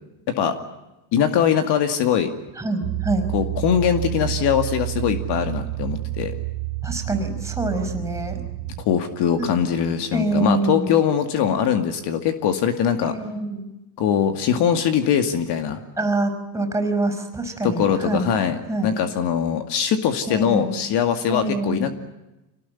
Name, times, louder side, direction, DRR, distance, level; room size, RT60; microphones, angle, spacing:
voice 1, 1.1-2.3 3.3-6.3 8.9-13.1 14.0-15.8 17.6-21.9, left 8 dB, 55° left, 8 dB, 2.3 m, -22 dB
voice 2, 2.6-3.3 6.8-8.4 9.4-9.5 10.1-10.9 13.0-13.6 16.0-18.3 18.7-19.0 20.3-20.8 21.3-21.9, right 2 dB, 5° right, 7 dB, 5.1 m, -25 dB
sound 1, 2.8-8.8, right 18 dB, 55° right, 1.2 m, -29 dB
26.0 x 18.5 x 9.8 m, 0.99 s
cardioid pair, 125°, 48 cm